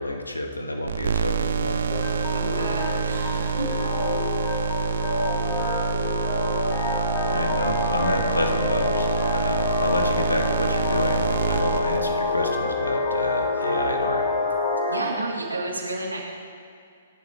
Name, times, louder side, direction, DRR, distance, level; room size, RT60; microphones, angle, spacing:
voice 1, 0.0-1.9 5.5-5.7 7.3-14.3, left 1 dB, 80° left, 4 dB, 1.9 m, -29 dB
sound 1, 0.9-12.5, right 6 dB, 60° right, 0.6 m, -27 dB
sound 2, 1.9-15.0, left 3 dB, 35° left, 4.3 m, -27 dB
voice 2, 2.3-3.7 14.9-16.2, right 2 dB, 75° right, -3 dB, 3.8 m, -31 dB
25.5 x 11.5 x 3.5 m, 2.4 s
figure-of-eight pair, 120°, 0 cm